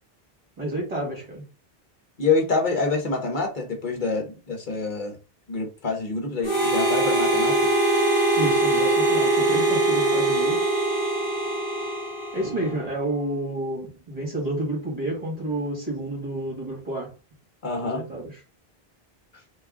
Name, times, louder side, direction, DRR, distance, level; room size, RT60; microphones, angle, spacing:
voice 1, 0.6-1.4 8.4-10.7 12.3-17.1 17.8-18.4, right 1 dB, 40° right, 2.0 m, -30 dB
voice 2, 2.2-5.2 5.5-7.7 12.4-12.6 17.6-18.0, left 4 dB, 50° left, 1.2 m, -26 dB
Harmonica, 6.4-12.8, right 2 dB, 35° left, 1.6 m, -22 dB
3.5 x 3.0 x 3.6 m
omnidirectional pair, 1.0 m